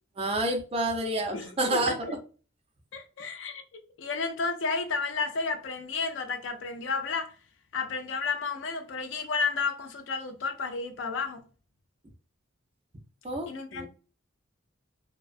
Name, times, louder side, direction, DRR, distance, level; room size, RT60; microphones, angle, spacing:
voice 1, 0.2-2.2 13.2-13.9, right 1 dB, 30° right, 0.4 m, -29 dB
voice 2, 1.3-2.2 2.9-3.6 4.0-7.3 7.7-11.4 13.5-13.9, left 4 dB, 60° left, 0.4 m, -32 dB
2.5 x 2.1 x 2.4 m
head